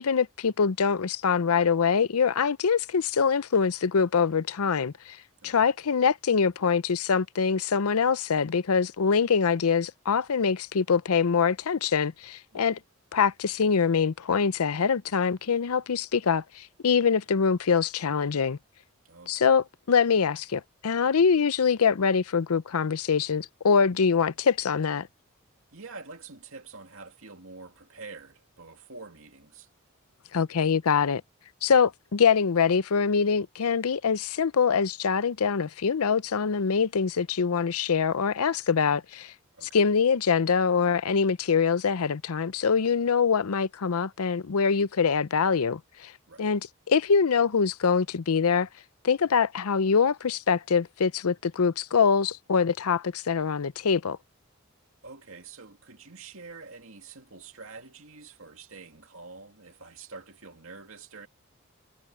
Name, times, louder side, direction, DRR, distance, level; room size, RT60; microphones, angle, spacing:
voice 1, 0.0-5.2 5.4-12.8 13.1-18.6 19.3-25.1 30.3-31.2 31.6-39.3 39.7-46.1 46.4-46.6 46.9-48.7 49.0-54.2, left 6 dB, 85° left, 0.6 m, -24 dB
voice 2, 5.4-5.7 12.5-12.8 19.0-19.5 25.7-29.7 39.5-39.8 46.3-46.5 55.0-61.3, right 4 dB, 65° right, 2.4 m, -46 dB
head